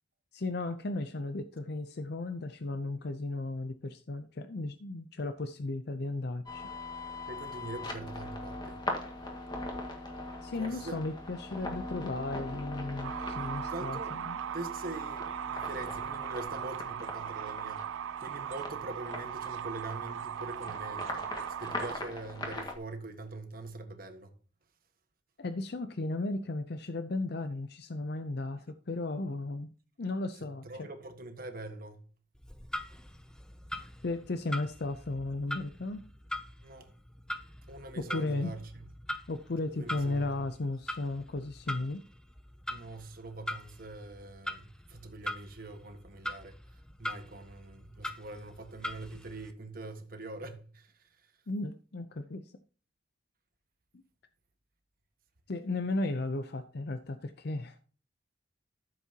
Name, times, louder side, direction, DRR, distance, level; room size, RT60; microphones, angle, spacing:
voice 1, 0.3-6.7 10.4-14.4 25.4-29.7 30.0-30.9 34.0-36.1 38.0-38.5 39.3-42.0 51.5-52.4 55.5-57.8, left 2 dB, 55° left, 0.6 m, -35 dB
sound 1, 6.5-22.8, left 2 dB, 25° left, 1.8 m, -41 dB
voice 2, 7.3-8.8 10.6-11.0 13.7-14.1 14.5-17.8 18.2-21.3 21.6-24.3 30.4-32.0 36.6-36.9 37.7-38.9 39.7-40.5 42.7-46.6 47.0-50.9, right 2 dB, 50° right, 1.5 m, -43 dB
sound 2, 13.0-22.0, right 9 dB, 85° right, 0.3 m, -38 dB
Clock, 32.3-49.5, left 1 dB, 5° left, 0.6 m, -43 dB
14.0 x 7.3 x 2.9 m
head